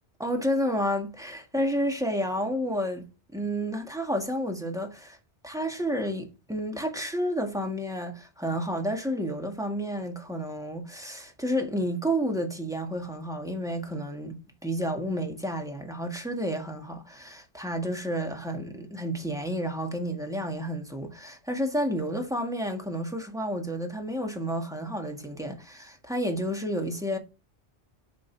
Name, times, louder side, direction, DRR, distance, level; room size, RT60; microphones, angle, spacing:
voice 1, 0.2-3.0 3.3-5.2 5.4-27.2, equal, 5° right, 1.8 m, -30 dB
8.6 x 5.2 x 4.6 m
omnidirectional pair, 1.2 m